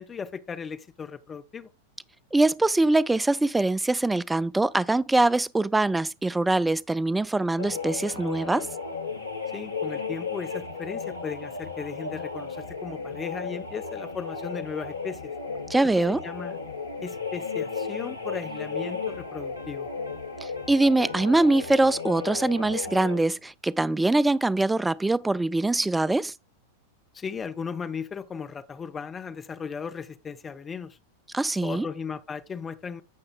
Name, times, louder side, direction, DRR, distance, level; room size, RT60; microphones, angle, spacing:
voice 1, 0.0-1.7 9.5-15.3 16.0-16.6 17.0-19.9 27.1-31.0 31.6-33.0, left 6 dB, 20° left, 0.8 m, -36 dB
voice 2, 2.3-8.7 15.7-16.2 20.4-26.3 31.3-31.9, right 2 dB, 5° right, 0.3 m, -23 dB
sound 1, 7.6-23.3, left 5 dB, 80° left, 1.0 m, -34 dB
15.0 x 5.4 x 2.3 m
figure-of-eight pair, 90°, 0 cm